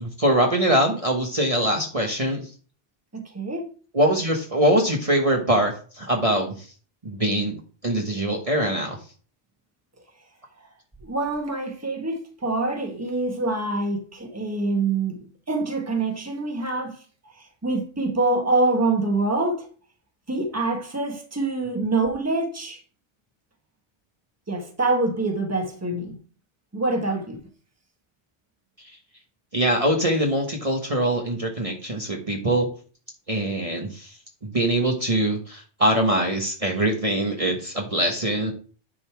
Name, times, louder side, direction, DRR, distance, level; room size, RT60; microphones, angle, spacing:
voice 1, 0.0-2.4 3.9-6.7 7.0-7.6 7.8-9.0 29.5-32.7 33.3-34.1 34.4-38.5, right 1 dB, 30° right, 1.3 m, -23 dB
voice 2, 3.1-3.7 11.0-17.0 17.4-19.7 20.3-22.8 24.5-26.2 26.7-27.4, right 2 dB, 15° right, 1.4 m, -25 dB
10.0 x 4.1 x 4.6 m
omnidirectional pair, 1.2 m